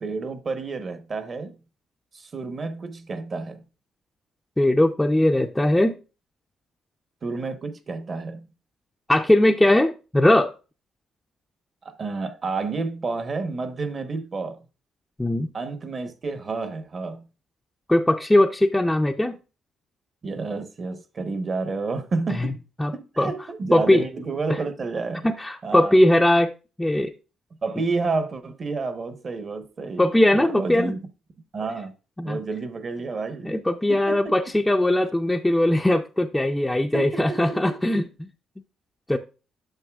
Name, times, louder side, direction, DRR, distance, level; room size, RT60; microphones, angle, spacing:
voice 1, 0.0-1.5 2.1-3.6 7.2-8.5 11.8-14.6 15.5-17.3 20.2-22.6 22.9-25.3 25.6-26.0 27.6-30.1 30.3-31.0 31.5-31.9 32.2-33.6 33.9-34.2 36.9-37.8, right 4 dB, 45° right, 1.0 m, -30 dB
voice 2, 4.6-5.9 9.1-10.5 15.2-15.5 17.9-19.4 22.4-22.5 22.8-22.9 23.2-23.3 23.7-24.0 25.2-26.5 26.8-27.1 30.0-30.9 32.2-32.4 33.4-38.3 39.1-39.2, left 1 dB, 10° left, 0.5 m, -20 dB
9.0 x 6.6 x 2.3 m
cardioid pair, 90°, 0 cm